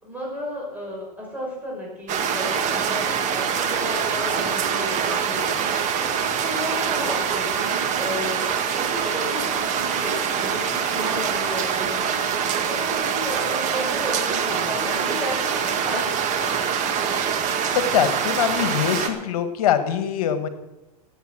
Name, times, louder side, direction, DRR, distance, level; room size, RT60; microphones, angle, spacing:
voice 1, 0.0-8.5 8.8-12.3 12.7-16.5, equal, 10° right, -4 dB, 5.6 m, -33 dB
sound 1, 2.1-19.1, right 7 dB, 35° right, 1.8 m, -24 dB
voice 2, 17.7-20.5, left 9 dB, 65° left, 10 dB, 1.5 m, -23 dB
17.0 x 8.3 x 6.2 m, 0.96 s
hypercardioid pair, 105°, 20 cm